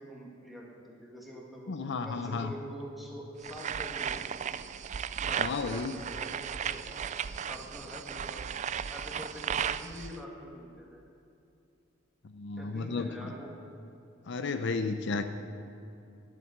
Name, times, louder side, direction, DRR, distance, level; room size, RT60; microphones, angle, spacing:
voice 1, 0.0-1.7 2.0-4.4 5.2-7.0 7.5-8.5 8.9-11.0 12.6-13.6, equal, ahead, -2 dB, 2.1 m, -45 dB
voice 2, 1.7-2.5 5.4-5.9 12.2-13.3 14.3-15.2, left 4 dB, 60° left, 8 dB, 0.6 m, -33 dB
sound 1, 3.4-10.2, right 8 dB, 35° right, 0.3 m, -35 dB
12.0 x 7.4 x 9.1 m, 2.7 s
head